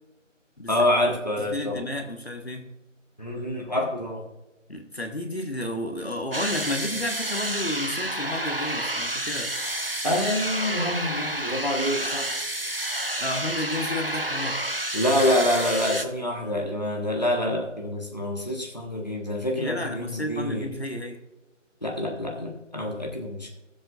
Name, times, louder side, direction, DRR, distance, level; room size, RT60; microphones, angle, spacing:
voice 1, 0.7-1.8 3.2-4.2 10.0-12.4 14.9-20.7 21.8-23.5, left 1 dB, 35° left, 0 dB, 1.3 m, -26 dB
voice 2, 1.5-2.7 4.7-9.6 13.2-14.7 19.5-21.2, left 1 dB, 55° left, 5 dB, 1.4 m, -31 dB
sound 1, 6.3-16.0, right 1 dB, 45° right, 0.7 m, -30 dB
19.5 x 7.8 x 2.5 m, 1.0 s
figure-of-eight pair, 175°, 39 cm